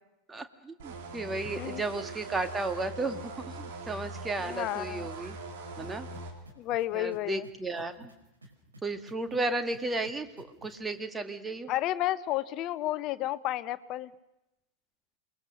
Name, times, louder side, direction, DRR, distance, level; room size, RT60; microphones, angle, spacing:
voice 1, 0.3-3.3 3.6-5.4 5.8-6.1 6.9-8.1 8.8-11.7, right 2 dB, 10° right, 8 dB, 1.9 m, -34 dB
sound 1, 0.8-6.3, right 3 dB, 50° right, 3.9 m, -41 dB
voice 2, 1.4-1.8 4.4-5.1 5.8-5.9 6.6-7.5 11.7-14.1, left 14 dB, 40° left, 15 dB, 1.0 m, -32 dB
sound 2, 5.8-10.9, right 1 dB, 75° right, 5.2 m, -53 dB
28.0 x 21.5 x 6.6 m, 0.91 s
figure-of-eight pair, 90°, 0 cm